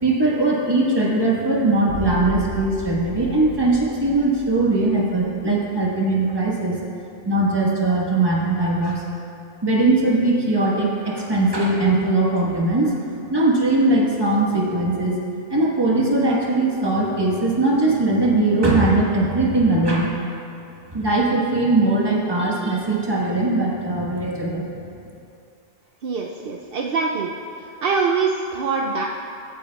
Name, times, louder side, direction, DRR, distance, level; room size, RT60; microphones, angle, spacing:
voice 1, 0.0-6.8 7.2-9.0 9.6-12.9 13.3-15.2 15.5-20.1 20.9-24.7, right 2 dB, 25° right, -4 dB, 1.3 m, -20 dB
sound 1, 1.9-5.9, left 4 dB, 85° left, 1.4 m, -35 dB
voice 2, 26.0-27.3 27.8-29.0, right 5 dB, 65° right, 0 dB, 0.7 m, -23 dB
14.5 x 9.2 x 2.3 m, 2.7 s
omnidirectional pair, 1.1 m